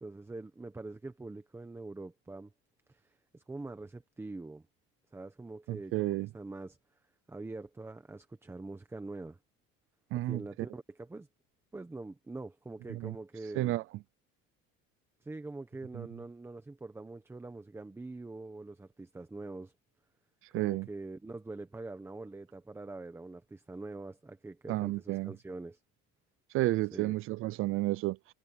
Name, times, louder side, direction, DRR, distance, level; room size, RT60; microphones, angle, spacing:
voice 1, 0.0-2.5 2.9-4.6 5.1-6.8 7.3-9.4 10.1-11.3 11.7-13.8 15.2-19.7 20.5-25.8 26.9-27.1, right 2 dB, 10° right, 1.2 m, -44 dB
voice 2, 5.7-6.3 10.1-10.4 12.9-13.1 13.5-13.8 15.9-16.1 20.5-20.9 24.7-25.3 26.5-28.2, right 18 dB, 45° right, 0.4 m, -31 dB
cardioid pair, 155°, 30 cm